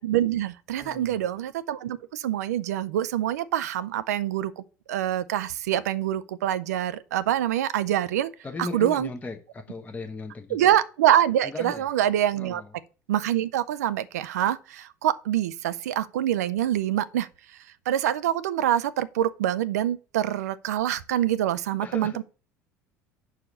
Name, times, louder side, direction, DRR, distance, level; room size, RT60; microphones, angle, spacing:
voice 1, 0.0-4.6 4.9-8.3 8.6-9.1 10.5-12.6 13.1-17.3 17.9-22.2, right 11 dB, 70° right, 0.5 m, -25 dB
voice 2, 0.8-1.2 8.4-10.7 11.4-11.9 12.4-12.7 21.8-22.2, left 3 dB, 15° left, 0.9 m, -37 dB
5.8 x 4.8 x 6.5 m
figure-of-eight pair, 65°, 9 cm